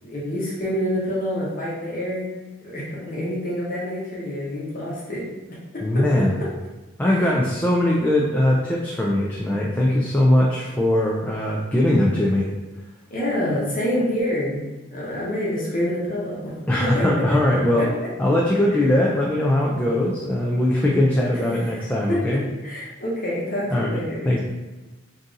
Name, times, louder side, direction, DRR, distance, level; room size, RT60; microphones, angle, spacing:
voice 1, 0.0-2.3 2.6-5.2 5.7-5.8 7.0-7.2 13.1-14.6 14.9-16.5 16.8-17.9 22.1-24.3, left 1 dB, 40° left, -6 dB, 1.0 m, -27 dB
voice 2, 5.8-6.4 7.0-12.5 16.7-17.9 18.2-22.4 23.7-24.0 24.3-24.4, left 1 dB, 10° left, -4 dB, 0.3 m, -20 dB
3.6 x 2.7 x 3.9 m, 1.1 s
head